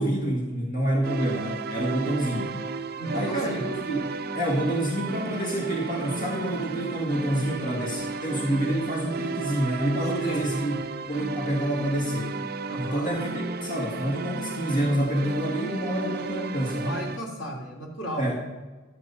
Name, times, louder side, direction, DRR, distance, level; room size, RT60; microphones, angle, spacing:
voice 1, 0.0-2.5 3.1-4.0 4.3-10.8 11.1-12.3 12.8-17.0 18.2-18.5, right 1 dB, 45° left, -1 dB, 1.8 m, -27 dB
sound 1, 1.0-17.2, right 3 dB, 50° right, 0.6 m, -34 dB
voice 2, 2.3-2.6 3.0-3.6 10.2-10.5 12.7-13.1 16.8-18.3, right 1 dB, 80° left, -1 dB, 3.1 m, -34 dB
12.5 x 8.4 x 5.5 m, 1.3 s
head